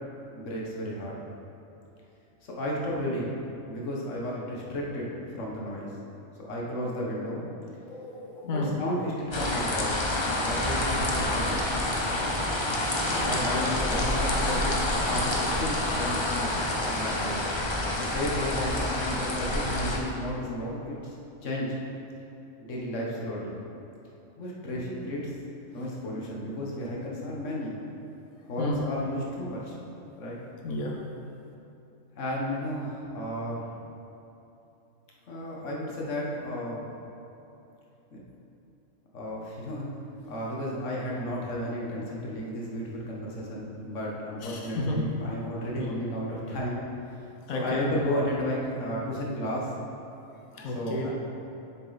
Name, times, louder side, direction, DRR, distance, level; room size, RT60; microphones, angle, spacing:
voice 1, 0.3-1.2 2.4-3.4 3.7-5.9 6.4-7.4 8.4-10.0 10.4-11.6 13.0-17.5 18.0-21.1 21.4-21.8 22.6-23.6 24.4-25.3 25.7-27.8 28.4-29.8 30.2-30.4 32.2-33.6 35.3-36.9 38.1-38.2 39.1-39.9 40.3-46.8 47.5-49.7 50.7-51.1, equal, 65° left, -3 dB, 1.6 m, -33 dB
voice 2, 7.9-8.8 28.6-28.8 30.6-31.0 44.4-45.1 45.7-45.9 47.5-47.9 50.3-51.1, left 1 dB, 85° left, -1 dB, 1.3 m, -32 dB
sound 1, 9.3-20.0, left 1 dB, 25° left, 0.7 m, -28 dB
7.4 x 6.8 x 4.0 m, 3.0 s
omnidirectional pair, 1.4 m